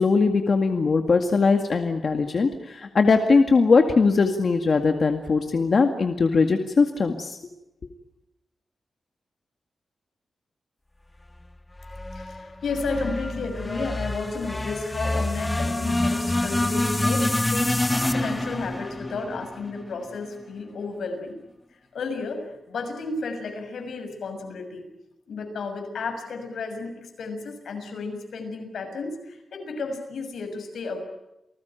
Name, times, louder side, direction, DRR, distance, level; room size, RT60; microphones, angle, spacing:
voice 1, 0.0-7.4, left 4 dB, 50° left, 5 dB, 2.0 m, -20 dB
sound 1, 11.8-20.2, left 1 dB, 15° left, 1.5 m, -27 dB
voice 2, 12.1-17.8 18.1-21.4 21.7-24.9 25.3-31.0, left 4 dB, 85° left, 6 dB, 6.6 m, -32 dB
29.0 x 19.5 x 9.1 m, 0.94 s
wide cardioid pair, 135°, 0 cm